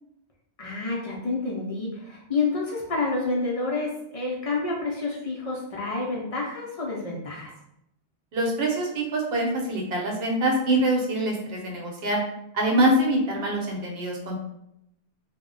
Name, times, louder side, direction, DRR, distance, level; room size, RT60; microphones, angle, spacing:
voice 1, 0.6-7.5, left 3 dB, 65° left, -3 dB, 0.3 m, -29 dB
voice 2, 8.3-12.2 12.5-14.4, right 1 dB, 65° right, 0 dB, 0.9 m, -24 dB
2.1 x 2.0 x 3.6 m, 0.81 s
omnidirectional pair, 1.1 m